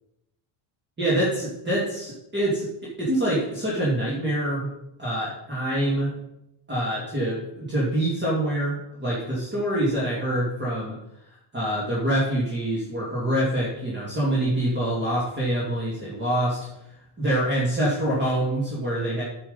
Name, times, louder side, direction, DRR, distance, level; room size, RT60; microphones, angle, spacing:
voice 1, 1.0-2.6 3.0-4.7 5.0-6.2 6.7-11.0 11.5-16.7 17.2-19.2, right 1 dB, 20° right, -6 dB, 2.7 m, -25 dB
9.3 x 6.3 x 5.6 m, 0.86 s
cardioid pair, 140°, 49 cm